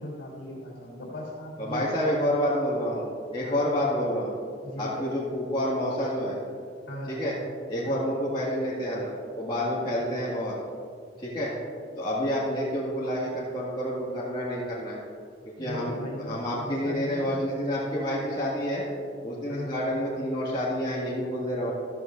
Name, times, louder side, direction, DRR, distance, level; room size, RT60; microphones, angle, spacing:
voice 1, 0.0-2.8 3.4-3.7 4.6-5.3 6.9-7.2 7.9-8.1 15.6-17.4 19.5-19.8, equal, 90° left, -6 dB, 3.2 m, -38 dB
voice 2, 1.6-3.0 3.3-4.3 4.8-6.3 7.1-7.3 7.7-10.6 11.2-11.5 12.0-15.0 15.6-16.0 16.3-18.8 19.2-21.7, equal, 25° left, -9 dB, 1.9 m, -28 dB
14.0 x 14.0 x 2.6 m, 2.2 s
head